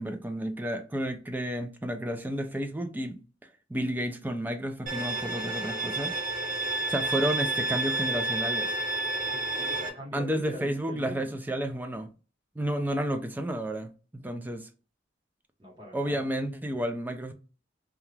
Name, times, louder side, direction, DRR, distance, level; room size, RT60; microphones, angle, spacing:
voice 1, 0.0-3.2 3.7-6.2 6.9-8.7 10.1-12.1 12.6-14.7 15.9-17.3, equal, 10° right, 0.4 m, -31 dB
Bowed string instrument, 4.9-9.9, right 2 dB, 50° right, 1.0 m, -30 dB
voice 2, 9.3-11.4 15.6-16.2, equal, 25° right, 1.0 m, -43 dB
2.8 x 2.3 x 3.2 m
head